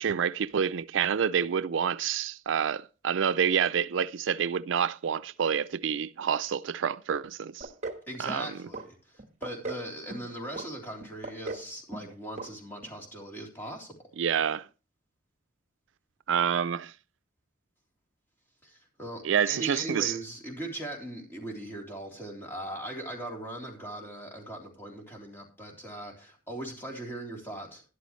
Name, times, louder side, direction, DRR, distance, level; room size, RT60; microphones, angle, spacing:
voice 1, 0.0-7.7 8.2-8.5 14.2-14.7 16.3-16.9 19.2-20.1, right 7 dB, 75° right, 0.4 m, -28 dB
sound 1, 7.6-8.0 8.3-8.9 9.2-9.8 10.1-10.7 11.0-11.7 11.9-12.1 12.4-12.5 12.8-12.9, right 3 dB, 35° right, 1.4 m, -37 dB
voice 2, 8.1-14.0 18.6-27.8, right 1 dB, 10° left, 3.4 m, -39 dB
12.5 x 11.0 x 3.1 m
head